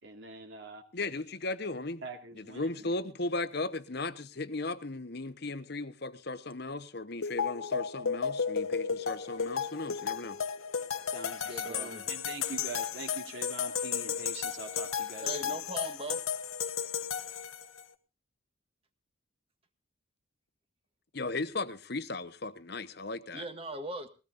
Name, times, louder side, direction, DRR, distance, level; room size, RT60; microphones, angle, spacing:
voice 1, 0.0-0.8 2.0-2.9 11.1-15.6, right 3 dB, 60° right, 2.6 m, -44 dB
voice 2, 0.9-2.0 2.3-10.4 21.1-23.5, left 2 dB, 50° left, 1.0 m, -36 dB
sound 1, 7.2-17.8, left 7 dB, 90° left, 1.1 m, -34 dB
voice 3, 11.4-12.1 15.2-16.2 23.3-24.1, right 1 dB, 25° right, 1.6 m, -39 dB
20.5 x 17.0 x 2.6 m
head